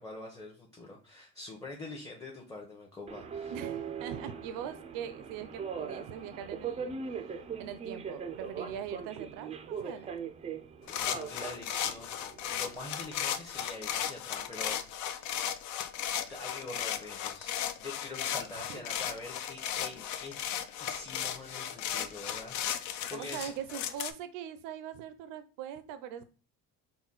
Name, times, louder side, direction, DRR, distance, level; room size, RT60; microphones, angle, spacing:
voice 1, 0.0-3.5 9.8-10.0 11.0-15.3 16.3-20.4 20.8-23.5, left 2 dB, 10° left, -1 dB, 0.8 m, -45 dB
Subway metro underground, 3.1-12.8, right 6 dB, 20° right, 0.4 m, -40 dB
voice 2, 3.5-7.2 7.6-10.1 18.7-18.9 23.1-26.2, right 9 dB, 80° right, 11 dB, 0.5 m, -42 dB
sound 1, 10.9-24.1, left 10 dB, 65° left, 0.5 m, -35 dB
4.0 x 2.2 x 3.8 m, 0.36 s
cardioid pair, 120°, 32 cm